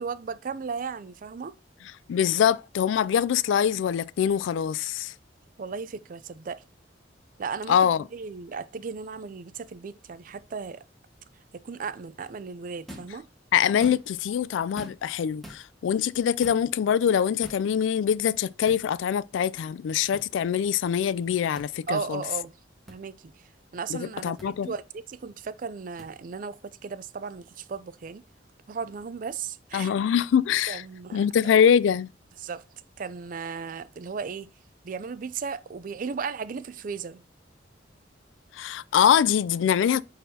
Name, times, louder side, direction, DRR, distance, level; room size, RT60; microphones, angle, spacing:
voice 1, 0.0-1.5 5.6-6.6 7.4-10.8 11.5-13.3 21.9-22.5 22.9-23.3 23.7-24.8 25.1-28.2 28.7-29.9 30.7-31.3 32.4-32.6 33.0-34.5 34.8-37.2, right 5 dB, 45° right, 0.4 m, -35 dB
voice 2, 2.1-5.1 7.7-8.0 13.5-22.2 23.9-24.7 29.7-30.8 31.1-32.1 38.5-40.0, left 8 dB, 85° left, 0.3 m, -24 dB
sound 1, 12.9-13.2 13.7-14.2 14.8-15.1 15.4-15.6 16.4-16.7 17.4-17.7 18.7-18.8 20.1-20.3 21.5-21.7 22.9-23.0 24.4-24.5 26.0-26.1, equal, ahead, 1.4 m, -43 dB
9.1 x 4.0 x 2.8 m
head